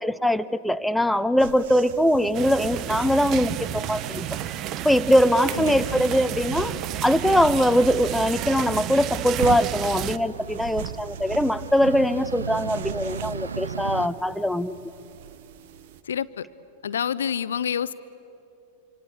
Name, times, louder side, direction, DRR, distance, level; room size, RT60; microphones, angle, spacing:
voice 1, 0.0-4.3 4.8-6.7 7.0-14.7, equal, ahead, 11 dB, 0.7 m, -22 dB
sound 1, 1.4-16.0, right 8 dB, 55° right, 1.1 m, -40 dB
sound 2, 2.3-10.2, right 12 dB, 35° right, 0.7 m, -32 dB
sound 3, 3.7-14.1, right 6 dB, 70° right, 0.8 m, -38 dB
voice 2, 5.5-6.0 16.0-16.4 16.8-17.9, left 8 dB, 65° left, 16 dB, 0.7 m, -28 dB
26.0 x 25.5 x 8.6 m, 2.9 s
figure-of-eight pair, 90°, 0 cm